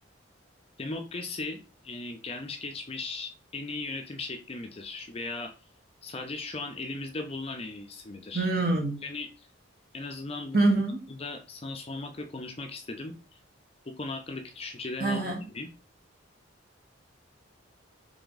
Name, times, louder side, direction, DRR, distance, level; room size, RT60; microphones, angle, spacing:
voice 1, 0.8-5.5 6.0-8.5 9.0-9.5 9.9-10.6 11.2-13.1 13.9-15.7, left 3 dB, 30° left, 0.5 m, -37 dB
voice 2, 8.3-9.0 10.5-11.1 15.0-15.4, right 2 dB, 50° right, 1.5 m, -25 dB
3.5 x 3.4 x 3.9 m
head